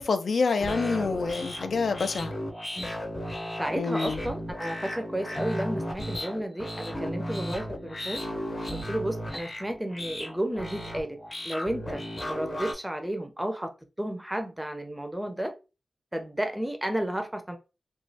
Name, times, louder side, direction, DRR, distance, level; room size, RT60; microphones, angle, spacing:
voice 1, 0.0-2.3 3.7-4.2, left 4 dB, 70° left, 0.4 m, -27 dB
sound 1, 0.6-12.7, equal, 35° left, 0.8 m, -35 dB
voice 2, 3.6-8.2 8.7-11.2 11.5-13.7 14.0-15.5 16.1-17.6, right 1 dB, 10° right, 0.5 m, -32 dB
3.0 x 2.2 x 2.6 m
wide cardioid pair, 135°, 0 cm